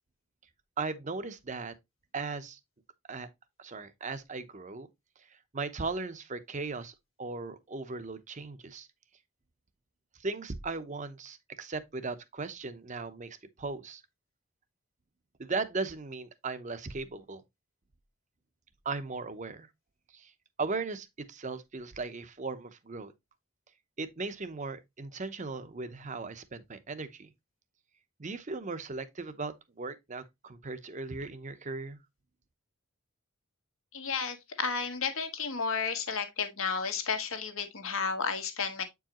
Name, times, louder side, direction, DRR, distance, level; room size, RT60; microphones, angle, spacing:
voice 1, 0.8-1.7 2.1-2.6 3.1-3.3 3.6-4.9 5.5-8.9 10.2-14.0 15.4-17.4 18.8-19.7 20.1-20.3 20.6-23.1 24.0-27.3 28.2-32.0, right 3 dB, 35° right, 0.7 m, -37 dB
voice 2, 33.9-38.8, left 5 dB, 85° left, 1.5 m, -32 dB
8.2 x 4.7 x 2.9 m
head